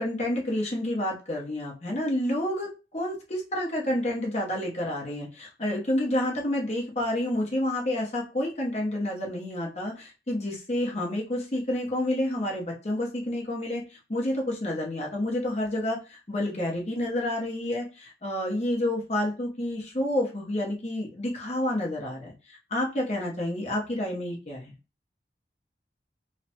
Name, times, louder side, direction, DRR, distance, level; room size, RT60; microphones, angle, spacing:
voice 1, 0.0-24.7, left 1 dB, 35° left, -2 dB, 0.8 m, -29 dB
3.2 x 2.1 x 2.8 m, 0.31 s
head